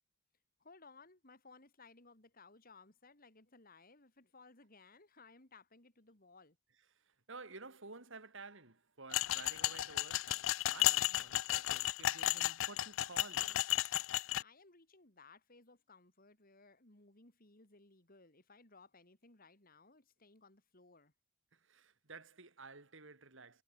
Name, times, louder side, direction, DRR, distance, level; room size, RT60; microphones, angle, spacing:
voice 1, 0.6-6.6 14.4-21.1, left 3 dB, 45° left, 3.2 m, -61 dB
voice 2, 6.9-13.7 21.5-23.6, right 3 dB, 60° right, 2.8 m, -53 dB
sound 1, 9.1-14.4, left 15 dB, 65° left, 0.4 m, -34 dB
head